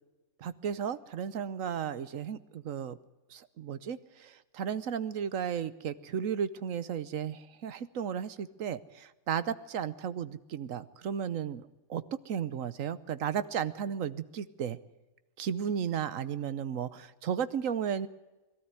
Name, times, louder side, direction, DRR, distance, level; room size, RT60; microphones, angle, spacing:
voice 1, 0.4-3.0 3.3-14.8 15.4-18.1, right 8 dB, 75° right, 15 dB, 1.3 m, -34 dB
22.0 x 13.0 x 9.5 m, 1.1 s
omnidirectional pair, 1.4 m